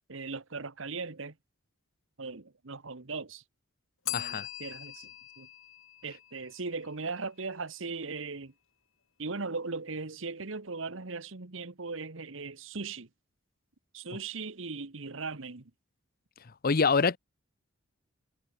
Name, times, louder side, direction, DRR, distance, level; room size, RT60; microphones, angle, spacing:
voice 1, 0.1-1.3 2.2-3.4 4.1-5.1 5.4-5.5 6.0-8.5 9.2-13.1 13.9-15.7, right 4 dB, 65° right, 1.3 m, -38 dB
Bell, 4.0-6.9, left 14 dB, 80° left, 2.4 m, -41 dB
voice 2, 4.1-4.5 16.6-17.2, left 5 dB, 45° left, 0.7 m, -25 dB
head